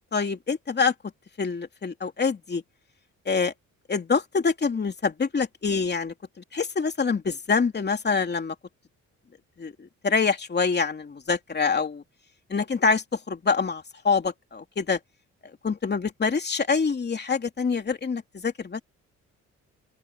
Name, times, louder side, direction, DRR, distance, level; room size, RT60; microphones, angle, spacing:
voice 1, 0.1-0.9 1.4-2.6 3.2-3.5 3.9-6.1 6.5-8.5 9.6-12.0 12.5-15.0 15.6-18.8, left 5 dB, 35° left, 3.1 m, -25 dB
open air
cardioid pair, 90°, 30 cm